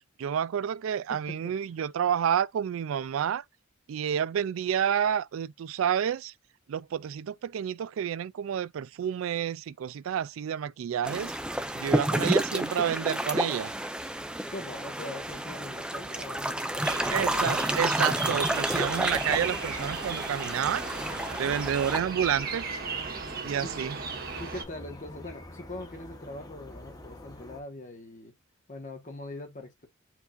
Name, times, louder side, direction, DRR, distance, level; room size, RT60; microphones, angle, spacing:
voice 1, 0.2-3.4 3.9-6.3 6.7-11.3 11.8-13.7 17.1-20.9 21.4-22.7 23.4-24.0, right 9 dB, 75° right, 0.3 m, -29 dB
voice 2, 1.1-1.6 14.5-17.8 21.4-21.8 23.6-23.7 24.4-28.3 28.7-29.9, left 2 dB, 40° left, 1.2 m, -42 dB
sound 1, 11.0-22.0, right 1 dB, 5° right, 0.5 m, -30 dB
sound 2, 16.8-24.6, right 4 dB, 50° right, 1.6 m, -36 dB
sound 3, 18.6-27.6, left 1 dB, 20° left, 0.9 m, -46 dB
4.7 x 2.6 x 3.8 m
head